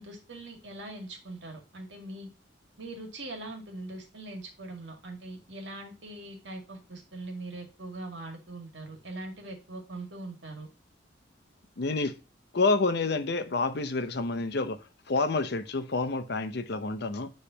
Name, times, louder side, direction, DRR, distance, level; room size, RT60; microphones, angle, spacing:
voice 1, 0.0-2.3 2.8-10.7 12.0-12.1, right 2 dB, 70° right, 2.0 m, -42 dB
voice 2, 11.8-12.1 12.5-14.8 15.1-17.3, left 3 dB, 60° left, 0.7 m, -28 dB
9.9 x 3.3 x 2.8 m
head